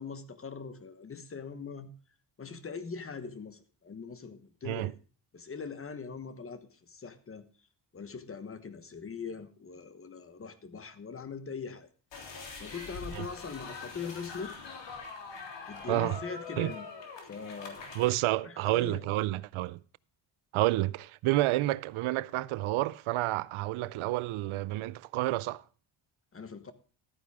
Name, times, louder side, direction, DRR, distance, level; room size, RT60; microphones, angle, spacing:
voice 1, 0.0-1.9 2.4-4.9 5.3-7.5 7.9-11.9 12.6-14.5 15.7-16.9 17.2-18.0 18.4-19.1 26.3-26.7, left 5 dB, 30° left, 1.1 m, -41 dB
sound 1, 12.1-18.1, left 4 dB, 65° left, 3.5 m, -43 dB
voice 2, 15.9-16.2 16.6-16.7 17.9-19.8 20.5-25.6, right 17 dB, 90° right, 0.6 m, -29 dB
13.0 x 9.7 x 3.5 m
cardioid pair, 130°, 47 cm